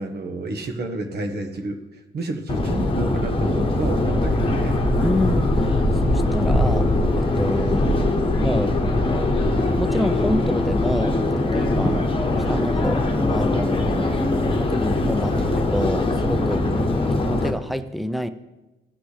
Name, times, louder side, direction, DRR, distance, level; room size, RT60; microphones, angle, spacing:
voice 1, 0.0-4.8 11.8-12.0 13.9-14.4 16.6-16.9, right 2 dB, 55° right, 5 dB, 1.2 m, -30 dB
Subway metro underground, 2.5-17.5, left 2 dB, 25° left, 1.1 m, -21 dB
voice 2, 5.0-8.1 8.4-8.8 9.8-12.0 12.5-14.1 14.6-16.6 17.2-18.3, left 1 dB, ahead, 12 dB, 0.5 m, -28 dB
15.5 x 6.0 x 3.3 m, 1.0 s
cardioid pair, 90°, 20 cm